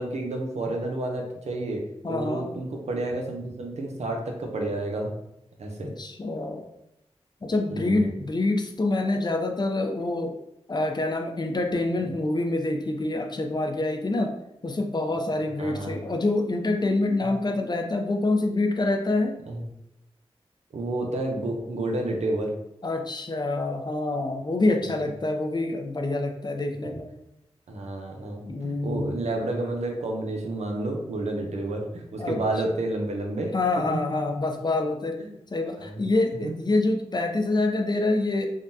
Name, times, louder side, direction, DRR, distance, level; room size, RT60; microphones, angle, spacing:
voice 1, 0.0-5.1 5.6-5.9 7.7-8.1 12.0-12.1 15.6-16.0 19.5-19.6 20.7-22.5 24.8-25.0 27.7-34.0 35.2-35.3 35.8-36.1 36.4-36.5, right 2 dB, 90° right, 1 dB, 0.6 m, -30 dB
voice 2, 2.0-2.5 5.8-6.7 7.4-10.4 10.7-14.3 14.6-19.4 22.8-27.1 28.5-29.1 32.2-32.4 33.5-35.2 35.5-38.5, left 2 dB, 40° left, 4 dB, 0.4 m, -26 dB
3.5 x 2.1 x 2.6 m, 0.84 s
wide cardioid pair, 50°, 11 cm